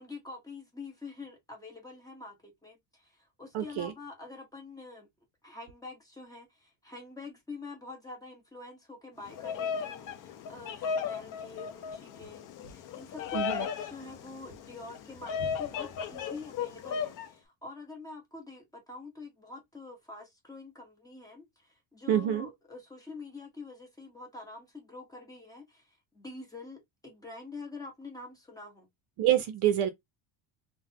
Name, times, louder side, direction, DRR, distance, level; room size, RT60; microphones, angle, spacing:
voice 1, 0.0-5.1 5.4-28.9, left 3 dB, 5° left, 0.9 m, -46 dB
voice 2, 3.5-3.9 13.3-13.7 22.1-22.5 29.2-29.9, right 11 dB, 55° right, 0.6 m, -27 dB
Bird vocalization bird call bird song, 9.2-17.3, left 7 dB, 40° left, 0.6 m, -36 dB
3.8 x 2.2 x 2.8 m
cardioid pair, 170°, 49 cm